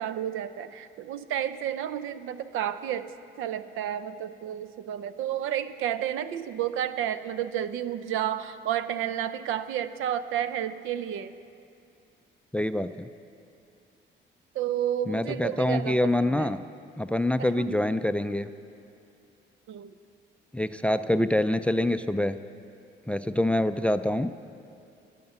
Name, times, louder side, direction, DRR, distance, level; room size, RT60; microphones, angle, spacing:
voice 1, 0.0-11.3 14.5-16.6 17.4-17.8 19.7-20.0, right 10 dB, 90° right, 13 dB, 0.5 m, -31 dB
voice 2, 12.5-13.1 15.1-16.6 17.0-18.5 20.5-22.4 23.1-24.3, left 1 dB, 5° left, 12 dB, 0.3 m, -25 dB
11.0 x 9.3 x 8.0 m, 2.6 s
cardioid pair, 90°, 20 cm